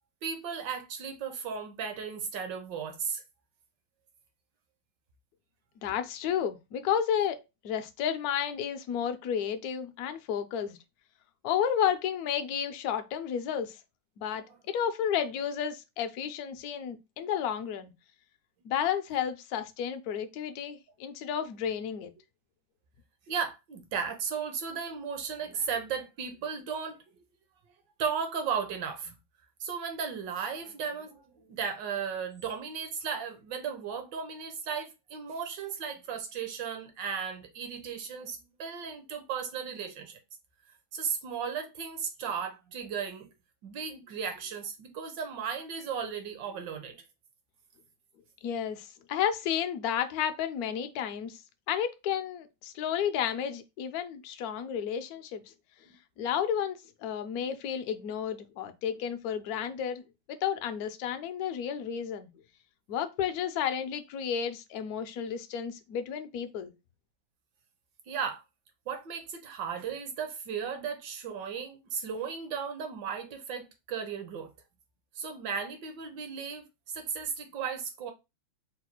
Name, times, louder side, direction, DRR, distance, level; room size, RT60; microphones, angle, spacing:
voice 1, 0.2-3.2 14.5-14.6 23.3-27.0 28.0-29.2 29.6-40.2 40.9-43.3 43.6-47.0 55.9-56.0 68.1-68.4 68.9-74.5 75.1-78.1, right 6 dB, 70° right, 1.4 m, -35 dB
voice 2, 5.8-10.8 11.4-13.8 14.2-17.9 18.6-22.1 48.4-51.4 51.7-55.4 56.2-60.0 60.3-62.3 62.9-66.7, left 8 dB, 75° left, 0.8 m, -32 dB
4.0 x 2.3 x 4.3 m
omnidirectional pair, 2.1 m